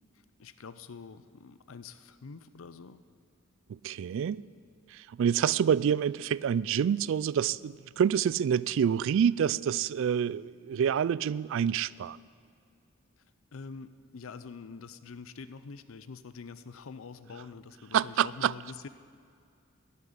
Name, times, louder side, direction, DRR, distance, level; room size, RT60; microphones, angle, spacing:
voice 1, 0.4-3.0 13.5-18.9, left 5 dB, 80° left, 0.6 m, -45 dB
voice 2, 3.7-4.4 4.9-12.2 17.9-18.5, right 8 dB, 65° right, 0.3 m, -27 dB
12.0 x 9.0 x 10.0 m
head